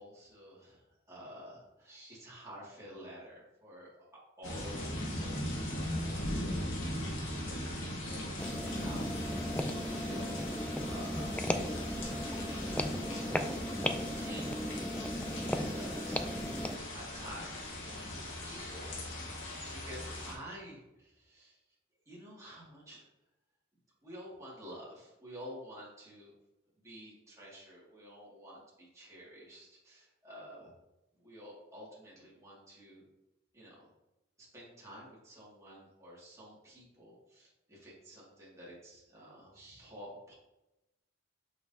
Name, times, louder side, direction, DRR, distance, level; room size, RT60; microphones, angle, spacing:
voice 1, 0.0-4.1 4.4-16.4 16.8-18.9 19.6-21.6 22.1-23.1 24.0-26.3 26.8-30.7 31.1-33.0 33.5-33.9 34.4-40.3, equal, 15° right, -7 dB, 2.3 m, -51 dB
sound 1, 4.4-20.3, left 1 dB, 70° left, 1.9 m, -39 dB
sound 2, 8.4-16.8, equal, 5° left, 0.4 m, -36 dB
6.7 x 5.8 x 2.8 m, 0.97 s
head